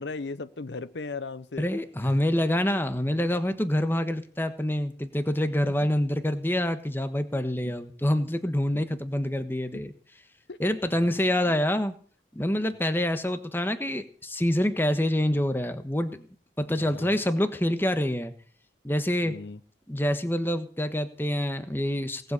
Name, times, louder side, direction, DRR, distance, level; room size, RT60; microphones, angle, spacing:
voice 1, 0.0-1.7 2.0-2.1 5.6-5.9 8.7-8.8 9.7-9.8 10.5-10.6 10.9-11.2 15.3-15.4 16.7-17.2 19.2-19.6, left 3 dB, 80° left, 0.7 m, -38 dB
voice 2, 1.6-9.9 10.6-12.0 12.3-16.2 16.6-18.3 18.8-19.3 19.9-22.3, left 1 dB, 10° left, 1.3 m, -26 dB
18.5 x 8.0 x 8.1 m
head